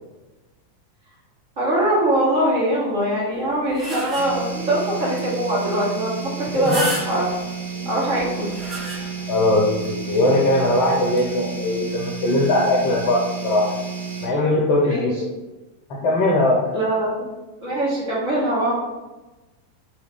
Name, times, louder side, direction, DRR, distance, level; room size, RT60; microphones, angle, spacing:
voice 1, 1.6-6.2 6.5-7.2 7.8-8.5 14.8-15.1 16.7-17.1 17.6-18.7, right 1 dB, 50° right, -8 dB, 1.2 m, -22 dB
sound 1, 3.4-4.6 5.2-5.3 5.6-5.7 6.4-7.5 8.2-9.4 9.8-9.9 11.0-11.2, right 2 dB, 10° right, 1.2 m, -31 dB
sound 2, 4.2-14.3, right 5 dB, 75° right, 0.5 m, -32 dB
voice 2, 9.3-13.8 14.2-15.1 16.0-16.8, left 1 dB, 40° left, -2 dB, 0.5 m, -20 dB
2.7 x 2.4 x 3.3 m, 1.1 s
figure-of-eight pair, 90°, 0 cm